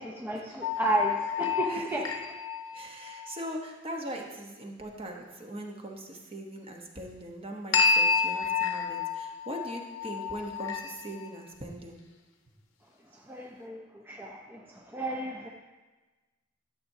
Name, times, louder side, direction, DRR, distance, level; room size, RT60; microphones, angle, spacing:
voice 1, 0.0-2.0 13.3-13.8 14.1-14.6 14.9-15.5, right 2 dB, 10° right, -2 dB, 0.5 m, -32 dB
sound 1, 0.6-3.5 7.7-11.3, left 5 dB, 85° left, 0.8 m, -29 dB
voice 2, 1.7-2.1 2.7-12.0, right 1 dB, 30° right, 1 dB, 1.0 m, -40 dB
12.0 x 7.2 x 2.7 m, 1.2 s
head